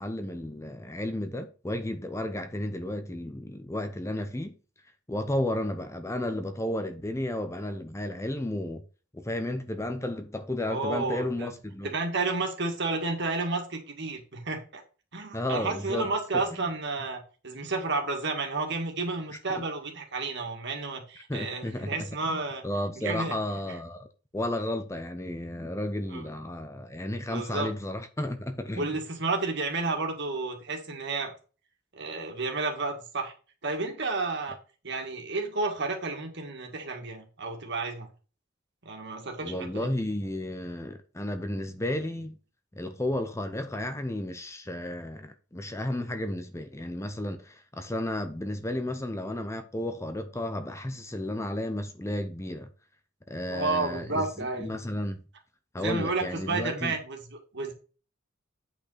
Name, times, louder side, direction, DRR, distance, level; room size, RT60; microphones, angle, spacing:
voice 1, 0.0-4.6 5.1-8.8 9.1-11.9 15.3-16.4 19.5-19.6 21.3-24.1 24.3-29.0 39.4-42.4 42.7-52.7 53.3-55.2 55.7-56.9, left 1 dB, 15° left, 0.7 m, -33 dB
voice 2, 10.7-11.5 11.9-14.8 15.1-22.6 23.0-23.4 23.7-23.8 26.1-26.2 27.3-27.7 28.7-31.3 31.9-33.3 33.6-34.6 34.8-38.1 38.9-39.9 53.5-54.7 55.8-57.7, right 3 dB, 60° right, 2.1 m, -31 dB
8.6 x 5.5 x 4.1 m
head